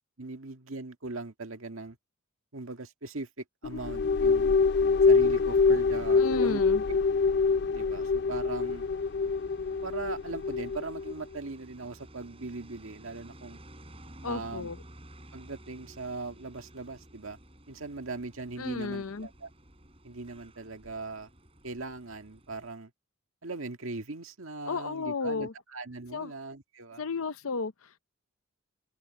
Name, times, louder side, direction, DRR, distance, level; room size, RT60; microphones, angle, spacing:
voice 1, 0.0-2.0 2.5-4.6 5.0-6.6 6.9-7.0 7.7-8.9 9.8-13.6 14.3-14.7 15.3-17.4 17.7-19.5 20.0-21.3 21.6-22.9 23.4-27.0, right 3 dB, 80° right, 1.8 m, -40 dB
sound 1, 3.6-11.2, left 4 dB, 50° left, 0.3 m, -25 dB
voice 2, 6.1-6.8 14.2-14.8 18.6-19.3 24.7-25.5 26.1-26.3 27.0-28.0, left 4 dB, 90° left, 0.7 m, -33 dB
sound 2, 8.6-22.7, right 1 dB, 25° right, 8.0 m, -53 dB
open air
head